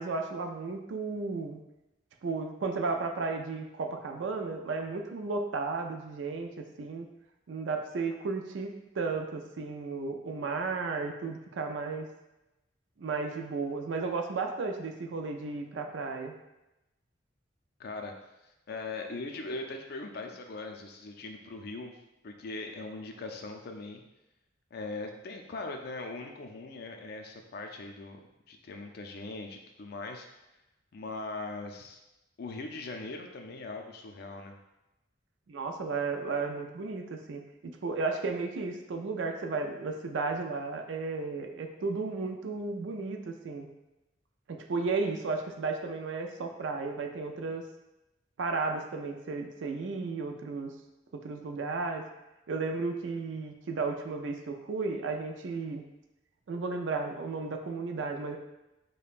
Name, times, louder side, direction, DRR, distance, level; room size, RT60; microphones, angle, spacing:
voice 1, 0.0-1.6 2.2-7.1 7.5-12.1 13.0-16.3 35.5-37.4 37.8-43.7 44.5-47.6 48.4-50.7 51.1-52.0 52.5-55.8 56.5-58.4, right 4 dB, 70° right, 4 dB, 0.4 m, -34 dB
voice 2, 17.8-18.1 18.7-21.9 22.2-24.0 24.7-28.2 28.5-30.3 30.9-32.0 32.4-34.6, left 3 dB, 55° left, 3 dB, 0.4 m, -40 dB
5.1 x 2.1 x 2.4 m, 0.96 s
head